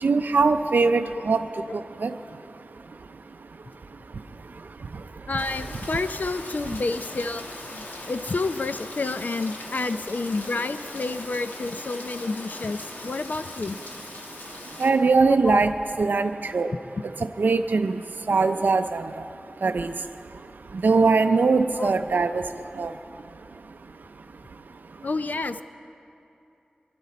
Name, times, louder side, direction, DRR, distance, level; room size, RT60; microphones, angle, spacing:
voice 1, 0.0-1.4 2.0-2.1 14.8-16.7 17.4-18.0 18.3-19.0 19.6-19.9 20.8-22.4 22.8-22.9, right 4 dB, 80° right, 7 dB, 0.4 m, -21 dB
voice 2, 5.3-13.8 15.3-15.6 17.0-17.1 21.7-21.9 25.0-25.6, left 3 dB, 65° left, 11 dB, 0.5 m, -29 dB
Rain, 5.4-14.9, left 2 dB, 85° left, 1.3 m, -40 dB
23.5 x 11.5 x 4.1 m, 2.7 s
wide cardioid pair, 50°, 3 cm